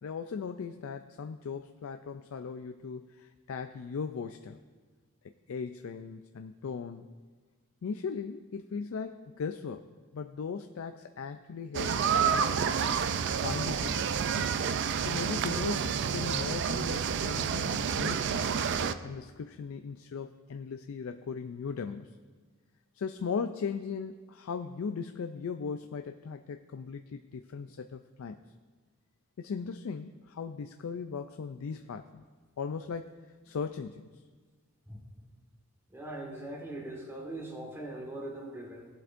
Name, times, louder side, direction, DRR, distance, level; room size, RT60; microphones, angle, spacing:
voice 1, 0.0-4.6 5.5-7.1 7.8-9.9 10.1-12.9 13.4-14.0 15.0-18.5 19.0-22.2 22.9-28.4 29.4-32.2 32.6-34.1, left 5 dB, 70° left, 8 dB, 0.4 m, -38 dB
sound 1, 11.7-18.9, right 7 dB, 55° right, 0.4 m, -29 dB
voice 2, 35.9-38.9, right 1 dB, 10° right, -1 dB, 1.7 m, -41 dB
17.5 x 7.8 x 2.6 m, 1.4 s
head